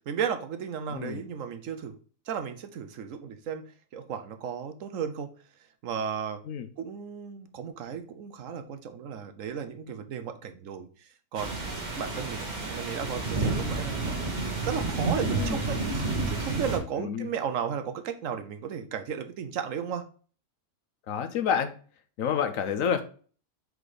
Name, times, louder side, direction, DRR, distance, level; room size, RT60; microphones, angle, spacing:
voice 1, 0.1-2.0 2.3-5.3 5.8-6.4 6.8-14.4 14.6-20.1, right 7 dB, 65° right, 8 dB, 1.0 m, -35 dB
sound 1, 11.3-16.8, right 3 dB, 30° right, 1.4 m, -30 dB
voice 2, 21.1-21.7 22.2-23.0, left 7 dB, 70° left, 9 dB, 1.1 m, -28 dB
4.8 x 4.0 x 4.9 m, 0.41 s
omnidirectional pair, 1.5 m